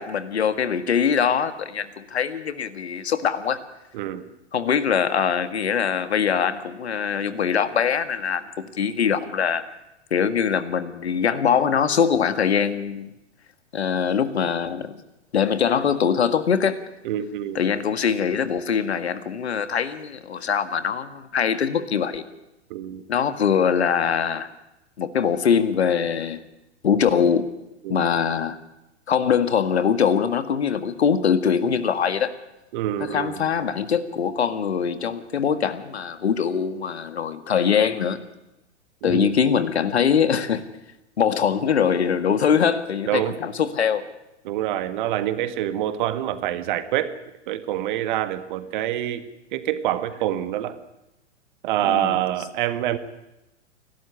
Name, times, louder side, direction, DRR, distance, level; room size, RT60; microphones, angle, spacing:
voice 1, 0.0-3.6 4.5-9.6 10.1-13.1 13.7-15.0 15.3-16.9 17.5-22.2 23.1-24.5 25.0-26.4 26.8-27.5 27.9-28.6 29.1-32.3 33.0-38.2 39.0-40.6 41.2-44.0 51.8-52.2, left 7 dB, 65° left, 12 dB, 1.9 m, -22 dB
voice 2, 3.9-4.3 17.0-17.6 22.7-23.0 27.9-28.1 32.7-33.4 39.0-39.3 43.1-43.4 44.5-47.1 47.5-49.2 49.5-50.8 51.6-53.0, right 12 dB, 45° right, 12 dB, 1.7 m, -26 dB
28.5 x 12.5 x 9.7 m, 0.93 s
figure-of-eight pair, 105°, 35 cm